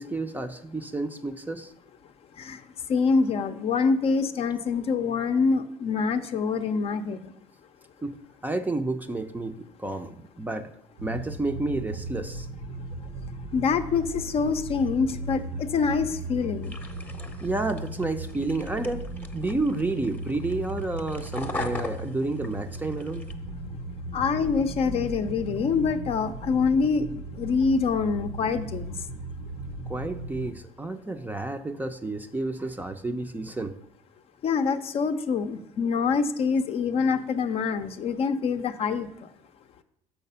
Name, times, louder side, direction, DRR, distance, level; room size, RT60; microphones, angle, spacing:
voice 1, 0.0-1.7 8.0-8.2 8.4-10.7 11.0-12.5 17.4-19.0 19.3-23.2 29.9-33.7, right 2 dB, 10° right, 8 dB, 0.5 m, -30 dB
voice 2, 2.9-7.2 13.5-16.7 24.1-27.0 27.4-28.9 34.4-39.1, left 5 dB, 45° left, 8 dB, 0.6 m, -25 dB
sound 1, 11.0-30.6, right 2 dB, 75° right, 0.9 m, -37 dB
sound 2, 16.6-23.3, left 2 dB, 10° left, 0.8 m, -40 dB
6.5 x 5.7 x 5.5 m, 0.78 s
cardioid pair, 110°, 14 cm